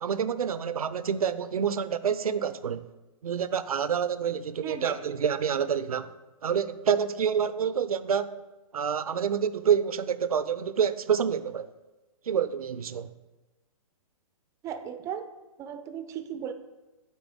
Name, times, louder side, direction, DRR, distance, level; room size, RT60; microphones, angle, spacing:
voice 1, 0.0-2.9 3.2-6.1 6.4-8.4 8.7-11.7 12.3-13.1, right 7 dB, 90° right, 0.4 m, -27 dB
voice 2, 4.6-5.1 14.6-15.3 15.6-16.5, right 8 dB, 15° right, 0.4 m, -36 dB
8.2 x 4.2 x 3.5 m
hypercardioid pair, 125°, 18 cm